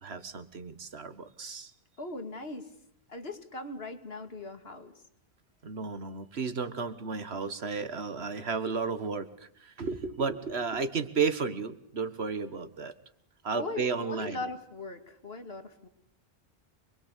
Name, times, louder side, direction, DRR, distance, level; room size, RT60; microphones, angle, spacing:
voice 1, 0.0-1.7 5.6-9.3 9.6-12.9 13.4-14.4, right 5 dB, 80° right, 12 dB, 1.8 m, -33 dB
voice 2, 2.0-2.7 3.1-5.0 13.5-15.9, left 2 dB, 70° left, 7 dB, 2.7 m, -39 dB
26.5 x 21.5 x 8.3 m, 0.69 s
omnidirectional pair, 1.1 m